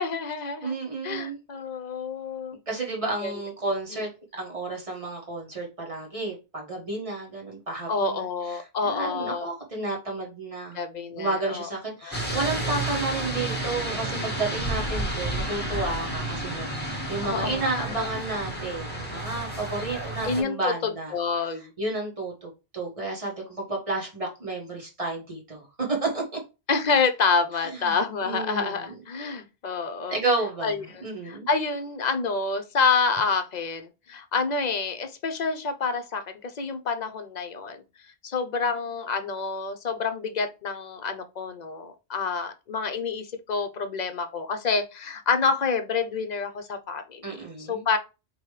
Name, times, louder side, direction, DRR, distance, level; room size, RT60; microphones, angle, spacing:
voice 1, 0.0-0.8 1.0-2.6 3.0-3.3 3.9-4.0 7.9-9.5 10.7-11.7 12.0-12.1 17.2-18.1 20.2-21.7 26.7-30.2 30.6-37.8 38.2-48.0, left 4 dB, 50° left, 0.7 m, -28 dB
voice 2, 0.6-1.4 2.7-4.1 4.4-10.8 11.1-21.1 21.8-26.4 27.6-27.9 28.2-29.0 30.1-30.7 31.0-31.5 47.2-47.8, right 2 dB, 35° right, 1.5 m, -31 dB
sound 1, 12.1-20.4, right 1 dB, 10° left, 1.4 m, -31 dB
5.0 x 3.0 x 3.2 m
omnidirectional pair, 1.1 m